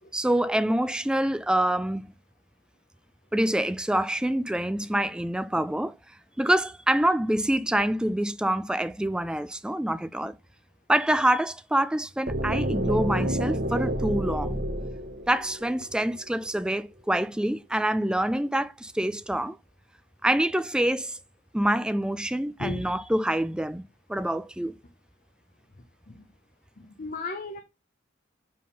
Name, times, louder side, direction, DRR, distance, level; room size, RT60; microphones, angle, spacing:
voice 1, 0.1-2.1 3.3-5.9 6.4-10.4 10.9-14.5 15.3-19.6 20.2-21.2 21.5-23.8 24.1-24.8, right 1 dB, 5° right, 0.3 m, -26 dB
sound 1, 12.3-16.2, equal, 55° right, 1.2 m, -29 dB
voice 2, 22.6-22.9 26.1-26.3 26.8-27.6, left 3 dB, 45° left, 0.8 m, -35 dB
7.6 x 3.6 x 5.4 m
head